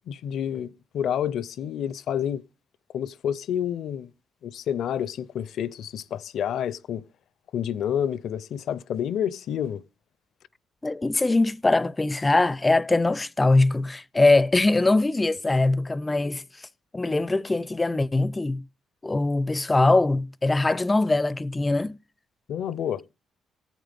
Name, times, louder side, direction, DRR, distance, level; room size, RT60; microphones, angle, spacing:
voice 1, 0.1-2.4 2.9-4.1 4.4-7.0 7.5-9.8 22.5-23.0, left 9 dB, 70° left, 0.6 m, -29 dB
voice 2, 10.8-16.4 16.9-18.6 19.0-22.0, left 2 dB, 20° left, 0.5 m, -22 dB
15.5 x 9.2 x 3.5 m
cardioid pair, 90°, 0 cm